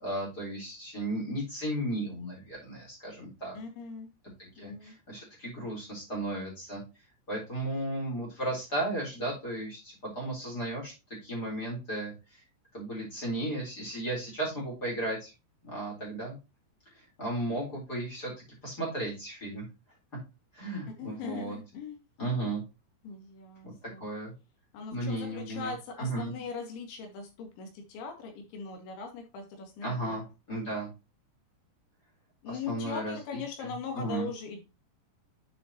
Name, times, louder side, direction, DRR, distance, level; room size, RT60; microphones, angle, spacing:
voice 1, 0.0-3.6 4.4-6.8 7.3-10.9 11.2-12.1 12.7-15.3 15.6-16.4 16.9-18.3 18.6-19.6 20.5-21.6 22.2-22.6 23.6-24.3 24.9-26.3 29.8-30.9 32.5-34.3, right 1 dB, 20° left, -1 dB, 3.7 m, -35 dB
voice 2, 3.6-4.1 4.6-5.0 21.0-22.0 22.3-22.4 23.0-24.1 24.7-30.2 32.4-34.6, left 5 dB, 70° left, 3 dB, 4.1 m, -40 dB
8.6 x 6.4 x 2.9 m, 0.27 s
omnidirectional pair, 5.9 m